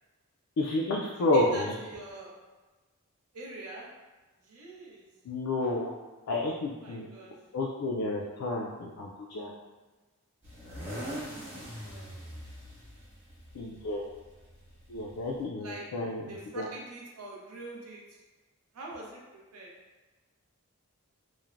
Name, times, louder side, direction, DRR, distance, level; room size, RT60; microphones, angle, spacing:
voice 1, 0.6-1.7 5.3-5.9 6.3-7.1 7.5-9.5 13.5-14.0 14.9-16.7, left 2 dB, 75° left, -2 dB, 0.3 m, -30 dB
voice 2, 1.3-2.3 3.3-3.9 4.4-5.1 6.8-7.3 11.3-12.1 15.6-15.8 16.3-18.0 18.7-19.7, right 2 dB, 80° right, -3 dB, 0.6 m, -43 dB
sound 1, 10.4-15.4, equal, 30° right, 1.0 m, -42 dB
3.0 x 2.0 x 2.4 m, 1.2 s
head